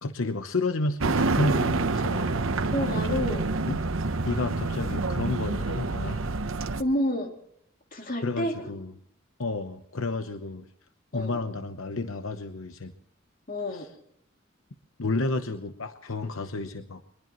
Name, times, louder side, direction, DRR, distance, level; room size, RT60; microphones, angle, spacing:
voice 1, 0.0-2.4 3.7-3.8 4.2-6.2 8.2-8.9 9.4-10.7 11.1-12.9 13.7-13.9 15.0-17.0, left 2 dB, 80° left, 9 dB, 0.9 m, -31 dB
sound 1, 1.0-6.8, right 3 dB, 80° right, 0.9 m, -27 dB
voice 2, 2.7-3.4 6.8-7.3 7.9-8.7 11.1-11.4 13.5-13.9, left 1 dB, 45° left, 3 dB, 2.7 m, -29 dB
22.0 x 21.5 x 3.1 m, 0.74 s
head